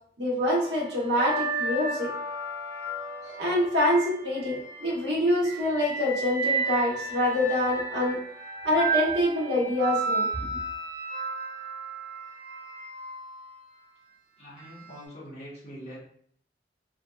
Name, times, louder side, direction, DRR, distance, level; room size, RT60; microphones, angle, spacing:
voice 1, 0.2-2.1 3.2-8.2 8.6-10.3, left 1 dB, 80° right, -4 dB, 1.2 m, -25 dB
sound 1, 0.6-4.9 5.4-13.5 14.6-14.8, right 3 dB, 30° right, 0.7 m, -33 dB
voice 2, 14.4-16.0, equal, 40° left, -8 dB, 1.3 m, -43 dB
3.4 x 2.6 x 2.3 m, 0.62 s
head